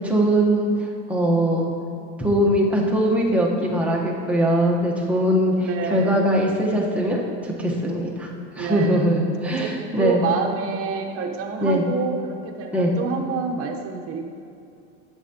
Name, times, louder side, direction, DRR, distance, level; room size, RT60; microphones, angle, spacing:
voice 1, 0.0-1.7 2.2-8.3 8.6-10.2 11.6-11.8 12.7-12.9, equal, 5° right, -3 dB, 1.1 m, -21 dB
voice 2, 5.6-6.2 8.5-9.2 9.4-14.3, right 5 dB, 40° right, 3 dB, 1.0 m, -28 dB
11.0 x 7.5 x 2.9 m, 2.5 s
supercardioid pair, 125°, 34 cm